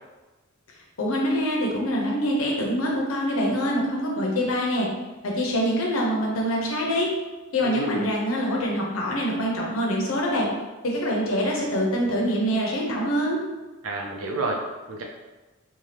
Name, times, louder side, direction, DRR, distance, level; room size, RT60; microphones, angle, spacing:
voice 1, 1.0-4.9 5.2-7.1 7.5-10.5 10.8-13.4, equal, 80° left, -2 dB, 0.7 m, -25 dB
voice 2, 7.6-8.1 13.8-15.0, right 2 dB, 85° right, 0 dB, 0.6 m, -30 dB
2.7 x 2.3 x 3.3 m, 1.2 s
head